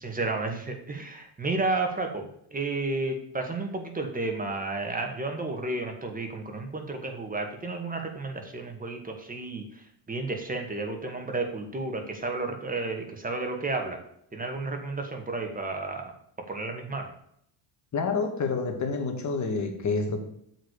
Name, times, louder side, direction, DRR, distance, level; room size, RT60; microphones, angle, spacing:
voice 1, 0.0-14.0 14.3-16.1 16.5-17.1, right 3 dB, 20° right, 4 dB, 1.9 m, -32 dB
voice 2, 17.9-20.2, left 4 dB, 40° left, 4 dB, 2.2 m, -28 dB
7.5 x 5.1 x 6.7 m, 0.70 s
supercardioid pair, 90°, 44 cm